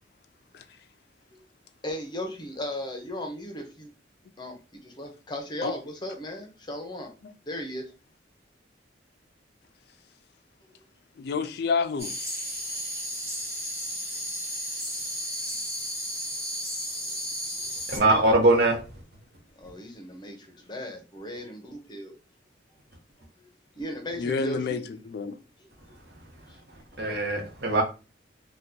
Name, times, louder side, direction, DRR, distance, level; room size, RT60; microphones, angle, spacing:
voice 1, 1.8-3.9 4.4-7.1 7.5-7.8 17.7-17.8 19.6-22.1 23.4-23.5 23.8-24.8 26.5-26.6, left 1 dB, 25° left, 0.7 m, -36 dB
voice 2, 11.2-12.1 24.2-25.4, left 5 dB, 60° left, 0.3 m, -29 dB
sound 1, 12.0-18.0, equal, 15° right, 1.2 m, -33 dB
voice 3, 17.9-18.8 27.0-27.8, right 2 dB, 60° right, 0.9 m, -21 dB
2.8 x 2.3 x 3.6 m
head